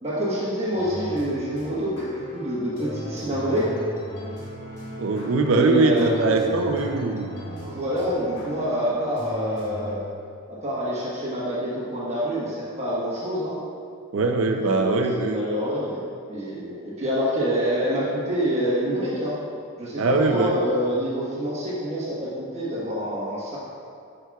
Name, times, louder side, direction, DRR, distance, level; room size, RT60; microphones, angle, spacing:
voice 1, 0.0-3.7 5.5-6.2 7.6-10.0 10.5-13.5 14.5-16.0 16.3-19.3 19.8-23.6, equal, 30° right, -8 dB, 1.3 m, -27 dB
sound 1, 0.7-9.9, equal, 90° left, 1.6 m, -37 dB
voice 2, 5.0-7.3 14.1-15.5 20.0-20.6, right 3 dB, 70° right, 5 dB, 0.5 m, -22 dB
10.0 x 6.0 x 2.3 m, 2.3 s
head